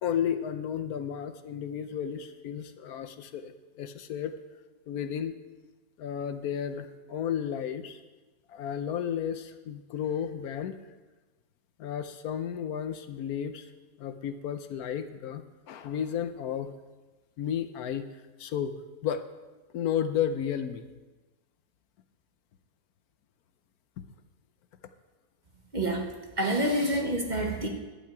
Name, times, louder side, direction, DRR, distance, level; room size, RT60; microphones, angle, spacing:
voice 1, 0.0-4.3 4.9-5.3 6.0-8.0 8.5-10.8 11.8-13.6 14.0-16.7 17.4-18.1 18.4-18.7 19.0-19.2 19.7-20.9, left 9 dB, 75° left, 9 dB, 1.1 m, -33 dB
voice 2, 25.7-26.1 26.4-27.7, right 1 dB, 30° right, 1 dB, 1.4 m, -27 dB
12.0 x 5.7 x 8.8 m, 1.2 s
omnidirectional pair, 1.7 m